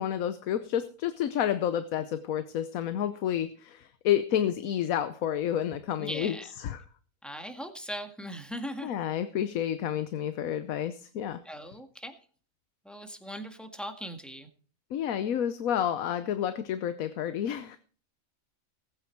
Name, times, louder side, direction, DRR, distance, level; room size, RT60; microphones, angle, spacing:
voice 1, 0.0-6.8 8.8-11.4 14.9-17.8, left 10 dB, 80° left, 11 dB, 1.2 m, -30 dB
voice 2, 6.0-6.5 7.2-8.9 11.4-12.2 12.8-14.5, equal, ahead, 5 dB, 1.7 m, -39 dB
19.0 x 8.9 x 4.5 m, 0.43 s
omnidirectional pair, 1.4 m